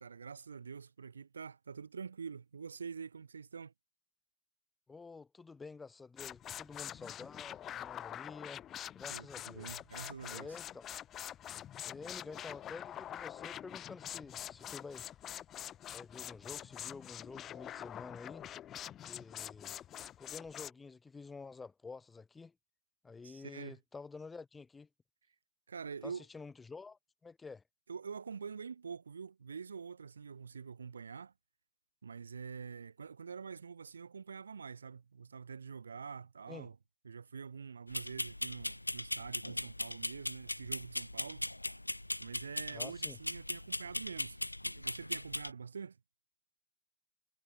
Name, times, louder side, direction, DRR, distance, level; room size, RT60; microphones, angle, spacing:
voice 1, 0.0-3.7 9.1-10.5 23.2-23.8 25.7-26.2 27.9-31.3 32.0-36.8 37.0-41.4 42.2-46.0, right 6 dB, 75° right, 2.1 m, -46 dB
voice 2, 4.9-8.6 8.9-9.8 10.3-10.8 11.8-15.1 15.9-18.5 19.0-19.8 20.2-22.5 23.0-24.9 26.0-27.6 36.5-36.7 42.7-43.2, left 4 dB, 15° left, 7.9 m, -49 dB
sound 1, 6.2-20.7, left 11 dB, 30° left, 2.6 m, -45 dB
sound 2, 37.9-45.5, left 1 dB, 85° left, 0.8 m, -39 dB
figure-of-eight pair, 90°, 0 cm